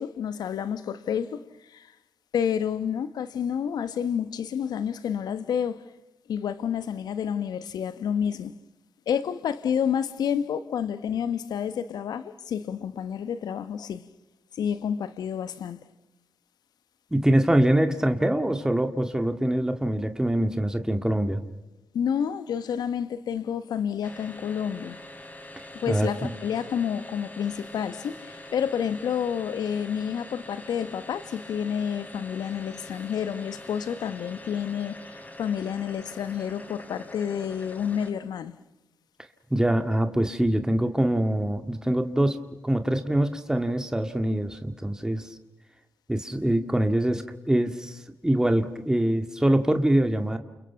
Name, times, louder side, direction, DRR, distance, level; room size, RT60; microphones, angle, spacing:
voice 1, 0.0-1.4 1.7-1.9 2.3-5.8 6.3-8.5 9.1-14.0 14.5-15.8 21.9-25.0 25.7-38.5, left 8 dB, 70° left, 1.3 m, -29 dB
voice 2, 17.1-21.4 25.9-26.3 39.5-45.3 46.1-50.4, right 1 dB, 10° right, 2.2 m, -24 dB
sound 1, 24.0-38.3, left 1 dB, 20° left, 4.0 m, -44 dB
29.5 x 29.5 x 6.0 m
hypercardioid pair, 40°, 7 cm